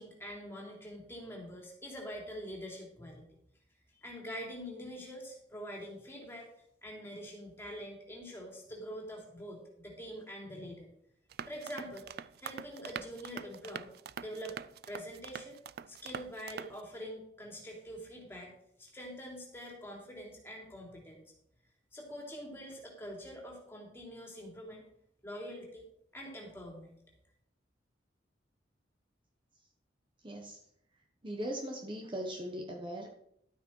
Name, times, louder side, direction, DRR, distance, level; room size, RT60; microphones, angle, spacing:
voice 1, 0.0-3.3 3.9-6.5 6.8-10.9 11.5-13.9 14.2-14.5 14.9-15.6 15.9-18.5 18.8-21.2 21.9-24.9 25.2-25.8 26.1-27.0, equal, 15° left, -1 dB, 3.1 m, -45 dB
sound 1, 11.3-16.8, right 7 dB, 55° right, 0.4 m, -44 dB
voice 2, 30.2-30.6 31.2-33.1, equal, 25° right, 1 dB, 1.2 m, -39 dB
12.0 x 8.6 x 4.6 m, 0.72 s
head